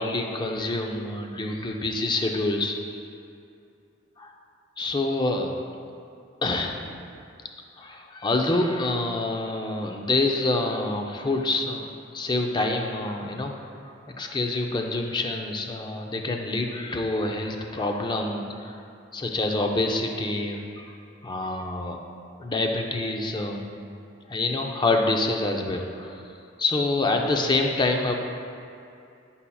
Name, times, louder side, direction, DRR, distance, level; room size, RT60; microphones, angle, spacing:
voice 1, 0.0-3.1 4.2-4.3 4.8-5.5 6.4-7.0 7.8-11.9 12.1-13.5 14.2-18.8 19.1-20.9 21.2-22.0 22.4-23.7 24.3-26.2 26.6-28.1, left 2 dB, 25° left, 2 dB, 0.5 m, -26 dB
9.8 x 5.5 x 2.3 m, 2.5 s
head